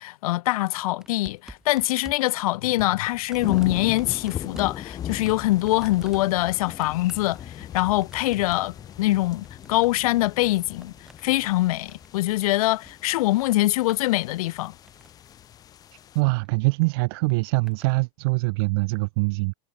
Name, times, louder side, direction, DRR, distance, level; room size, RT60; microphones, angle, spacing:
voice 1, 0.0-10.9 11.2-14.7, left 18 dB, 85° left, 0.5 m, -24 dB
sound 1, 1.0-12.9 13.2-14.2 14.6-15.3 16.2-16.5 17.3-18.0 18.8-18.9, right 1 dB, 5° right, 1.8 m, -49 dB
sound 2, 3.3-16.2, left 10 dB, 20° left, 1.3 m, -39 dB
sound 3, 3.9-9.2, left 26 dB, 40° left, 4.1 m, -55 dB
voice 2, 16.1-19.5, right 28 dB, 45° right, 0.4 m, -23 dB
supercardioid pair, 170°, 18 cm